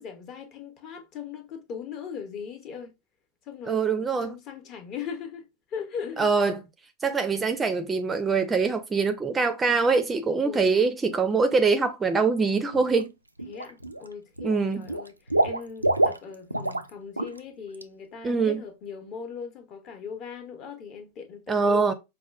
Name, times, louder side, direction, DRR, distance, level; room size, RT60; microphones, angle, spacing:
voice 1, 0.0-2.9 3.4-6.3 10.4-10.8 13.5-21.9, left 6 dB, 35° left, 0.9 m, -39 dB
voice 2, 3.7-4.4 6.2-6.6 7.0-13.1 14.4-14.9 18.2-18.6 21.5-21.9, right 4 dB, 15° right, 0.5 m, -24 dB
Water / Liquid, 12.7-13.0 13.4-14.1 14.4-16.9 17.2-17.4 17.7-17.8, right 2 dB, 85° right, 0.3 m, -26 dB
5.2 x 2.2 x 2.4 m
figure-of-eight pair, 90°, 0 cm